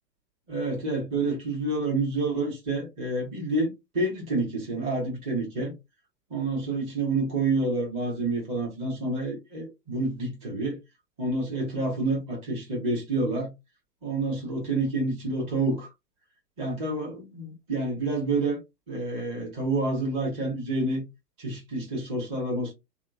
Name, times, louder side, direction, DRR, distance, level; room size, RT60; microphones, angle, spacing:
voice 1, 0.5-5.7 6.3-10.8 11.2-13.5 14.0-15.9 16.6-18.6 18.9-21.0 21.4-22.7, right 2 dB, 15° right, 0.6 m, -28 dB
2.8 x 2.0 x 2.3 m
figure-of-eight pair, 115°, 48 cm